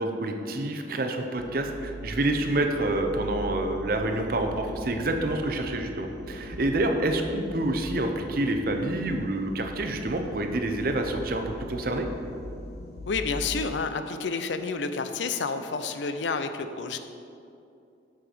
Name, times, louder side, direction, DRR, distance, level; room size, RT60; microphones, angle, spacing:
voice 1, 0.0-12.1, right 1 dB, 55° right, 5 dB, 0.7 m, -28 dB
sound 1, 1.4-13.7, equal, 60° left, 1.0 m, -41 dB
voice 2, 13.1-17.0, left 4 dB, 85° left, 9 dB, 0.5 m, -30 dB
7.5 x 5.9 x 5.0 m, 2.6 s
head